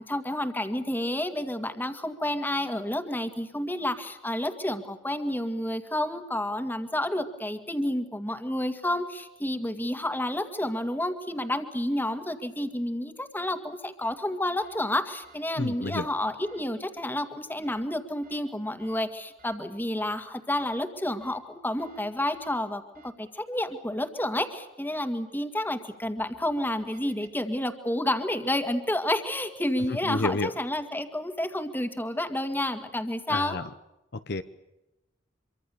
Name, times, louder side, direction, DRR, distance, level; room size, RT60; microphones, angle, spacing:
voice 1, 0.0-33.6, left 1 dB, 10° left, 7 dB, 2.1 m, -30 dB
sound 1, 14.0-14.1 14.6-14.8 15.2-15.4 15.8-16.0 16.4-16.6 17.6-17.8 18.2-18.4 18.8-19.0 19.4-19.6 20.0-20.2 20.6-20.8 21.2-21.4 21.8-22.0 22.3-22.6 22.9-23.1 25.9-27.3, right 5 dB, 50° right, 3.8 m, -57 dB
voice 2, 15.6-16.1 29.9-30.5 33.3-33.6 34.3-34.4, left 2 dB, 55° left, 11 dB, 1.0 m, -29 dB
26.0 x 24.5 x 7.0 m, 0.97 s
head